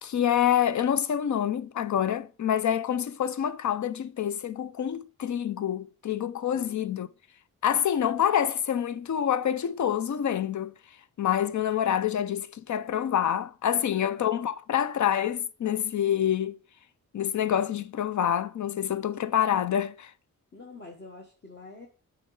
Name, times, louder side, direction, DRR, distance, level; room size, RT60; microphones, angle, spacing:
voice 1, 0.0-7.1 7.6-10.7 11.2-16.6 17.1-20.1, left 9 dB, 60° left, 0.5 m, -27 dB
voice 2, 6.5-6.9 13.7-14.2 20.5-21.9, left 3 dB, 30° left, 1.0 m, -47 dB
7.2 x 4.1 x 4.6 m
wide cardioid pair, 120°, 33 cm